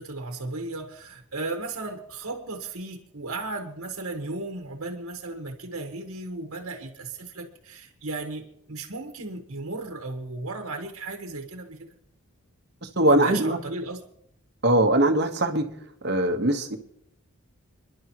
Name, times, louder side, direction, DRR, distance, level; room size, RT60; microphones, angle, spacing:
voice 1, 0.0-11.9 13.0-14.0, right 2 dB, 75° right, 3 dB, 1.5 m, -35 dB
voice 2, 12.8-13.6 14.6-15.7 16.0-16.8, right 1 dB, 50° right, 6 dB, 1.4 m, -21 dB
29.5 x 11.0 x 3.1 m, 0.72 s
head